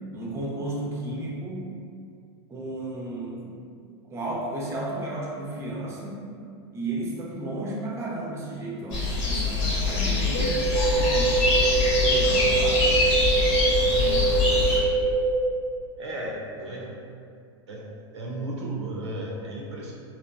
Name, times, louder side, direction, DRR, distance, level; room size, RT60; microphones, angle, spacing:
voice 1, 0.1-1.7 2.5-3.5 4.0-6.2 6.7-11.5 12.0-12.9, right 1 dB, 20° right, -3 dB, 0.5 m, -33 dB
sound 1, 8.9-14.8, left 3 dB, 50° left, 0.9 m, -24 dB
sound 2, 10.3-15.4, right 3 dB, 75° left, 0.6 m, -24 dB
voice 2, 13.9-14.3 16.0-17.0 17.7-17.9 18.1-19.9, right 1 dB, 85° right, -2 dB, 0.5 m, -34 dB
2.8 x 2.0 x 2.3 m, 2.3 s
hypercardioid pair, 95°, 14 cm